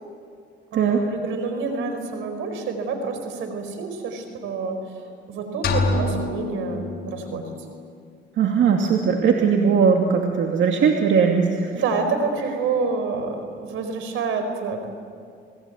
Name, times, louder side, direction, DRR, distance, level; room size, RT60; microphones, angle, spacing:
voice 1, 0.7-5.0 5.3-7.5 11.7-14.9, right 4 dB, 90° right, 7 dB, 4.7 m, -28 dB
sound 1, 5.6-7.6, left 3 dB, 55° left, 5.1 m, -26 dB
voice 2, 8.4-11.7, right 6 dB, 70° right, 2 dB, 2.5 m, -19 dB
28.0 x 20.5 x 9.4 m, 2.3 s
cardioid pair, 90°, 20 cm